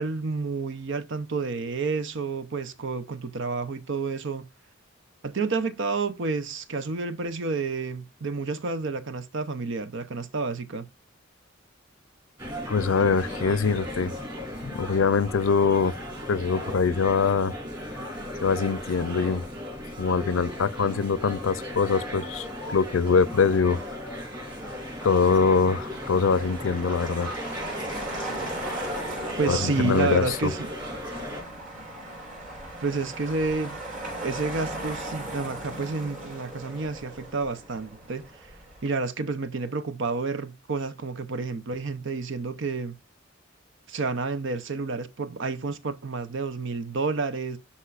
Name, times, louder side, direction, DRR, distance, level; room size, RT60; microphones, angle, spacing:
voice 1, 0.0-4.5 5.2-10.9 13.3-13.4 29.4-30.7 32.8-33.8 34.2-38.5 38.8-43.0 43.9-47.6, right 4 dB, 65° right, 0.7 m, -30 dB
sound 1, 12.4-31.4, left 1 dB, 20° right, 3.4 m, -36 dB
voice 2, 12.7-14.1 14.6-15.9 16.3-17.5 18.4-19.4 20.0-23.8 25.0-27.3 29.5-30.5, left 5 dB, 75° left, 0.5 m, -23 dB
Motor vehicle (road), 20.3-38.9, right 1 dB, 45° right, 4.1 m, -39 dB
11.5 x 4.3 x 2.4 m
head